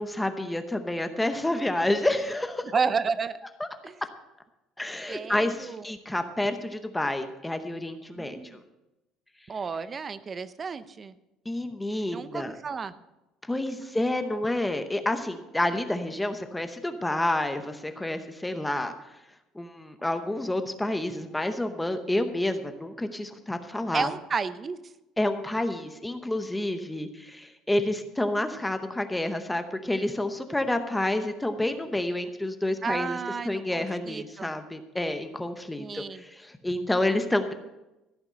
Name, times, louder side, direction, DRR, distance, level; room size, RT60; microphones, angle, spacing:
voice 1, 0.0-2.7 4.8-8.6 11.5-12.5 13.5-18.9 19.5-24.1 25.2-33.2 33.4-37.5, left 1 dB, 5° left, 8 dB, 0.8 m, -29 dB
voice 2, 2.7-3.4 3.8-4.0 5.1-5.8 8.2-8.6 9.5-11.1 12.1-12.9 13.8-13.9 23.9-24.8 32.8-34.5 35.8-36.2, right 5 dB, 25° right, 14 dB, 0.6 m, -32 dB
15.0 x 5.9 x 7.7 m, 0.98 s
cardioid pair, 155°, 0 cm